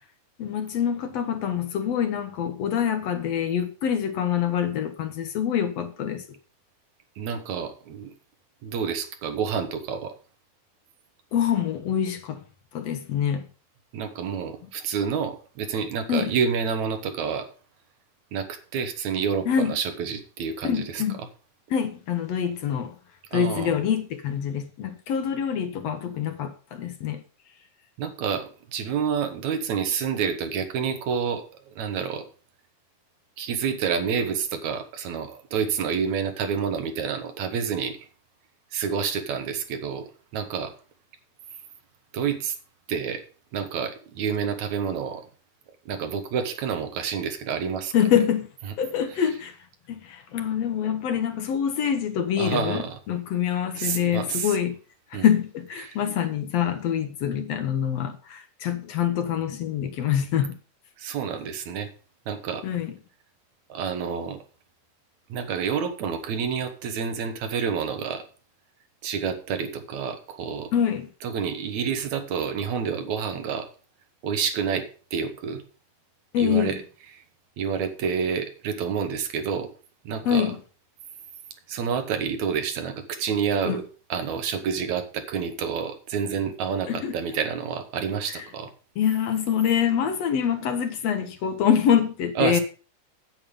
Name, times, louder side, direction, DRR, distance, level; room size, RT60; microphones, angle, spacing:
voice 1, 0.4-6.2 11.3-12.4 12.7-13.5 16.1-16.3 19.5-19.7 20.6-21.2 21.7-23.0 23.3-27.2 47.9-48.5 48.8-49.6 49.9-54.8 55.1-60.6 62.6-62.9 70.7-71.1 76.3-76.8 80.3-80.6 83.7-83.8 86.8-87.2 88.3-88.5 89.0-92.6, left 8 dB, 65° left, 1.9 m, -25 dB
voice 2, 7.2-8.1 8.6-10.1 13.9-17.5 18.3-21.0 23.3-23.8 28.0-32.3 33.4-38.0 38.7-40.0 40.3-40.7 42.1-42.5 42.9-43.2 43.5-45.3 45.9-47.9 52.4-53.0 53.7-54.6 55.1-55.3 55.8-56.0 61.0-61.9 62.3-62.6 63.7-64.4 65.3-68.2 69.0-70.7 71.2-73.7 74.2-75.6 76.4-76.8 77.1-77.2 77.6-79.7 80.0-80.5 81.7-83.8 84.1-88.7 92.4-92.6, right 6 dB, 70° right, 2.5 m, -28 dB
9.1 x 8.6 x 5.2 m
omnidirectional pair, 3.4 m